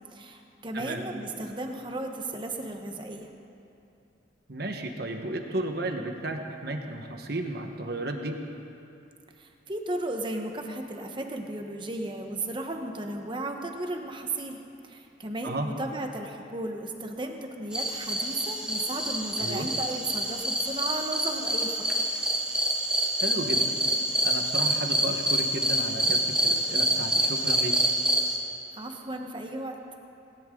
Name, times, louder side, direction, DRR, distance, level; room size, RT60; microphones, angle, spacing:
voice 1, 0.1-3.3 9.4-14.6 14.8-21.8 28.7-29.8, right 2 dB, 25° right, 3 dB, 1.2 m, -35 dB
voice 2, 4.5-8.4 15.4-15.7 19.4-19.7 23.2-23.8 24.2-27.7, right 1 dB, 60° right, 4 dB, 1.4 m, -33 dB
sound 1, 17.7-28.4, right 1 dB, 5° right, 1.4 m, -27 dB
18.5 x 18.0 x 3.9 m, 2.7 s
head